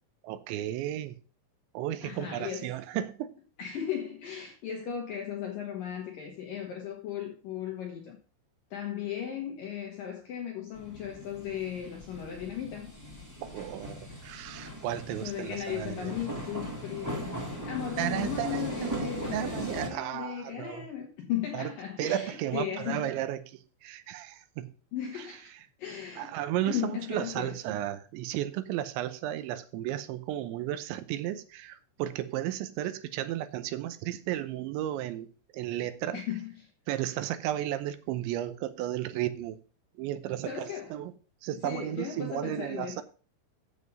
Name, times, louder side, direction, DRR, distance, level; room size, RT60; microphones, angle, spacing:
voice 1, 0.2-1.2 1.7-3.3 13.4-16.1 18.0-20.9 21.5-21.7 22.0-24.7 25.2-25.3 26.2-35.3 35.5-36.2 36.9-39.6 40.0-41.1 41.4-43.0, right 12 dB, 80° right, 3.0 m, -34 dB
voice 2, 2.0-2.7 3.6-8.2 8.7-12.9 15.1-17.3 17.6-23.1 24.9-25.5 25.8-26.3 26.6-27.6 36.1-36.7 40.4-41.0 41.6-43.0, left 9 dB, 70° left, 2.2 m, -36 dB
sound 1, 10.7-19.9, equal, 10° right, 1.2 m, -39 dB
8.2 x 7.3 x 5.4 m
omnidirectional pair, 5.4 m